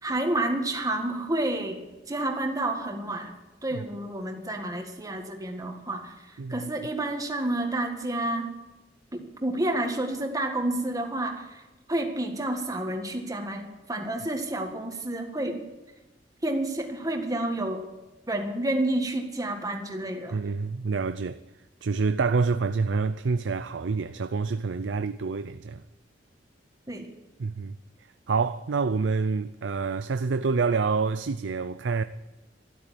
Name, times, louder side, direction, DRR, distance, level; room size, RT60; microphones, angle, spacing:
voice 1, 0.0-3.3 3.6-6.1 6.5-8.6 9.1-11.5 11.9-15.6 16.4-17.8 18.3-20.4 26.9-27.1, right 1 dB, 20° right, 1.8 m, -29 dB
voice 2, 6.4-6.7 20.3-21.4 21.8-25.8 27.4-27.8 28.3-32.0, right 4 dB, 80° right, 0.5 m, -27 dB
13.0 x 12.0 x 8.4 m
head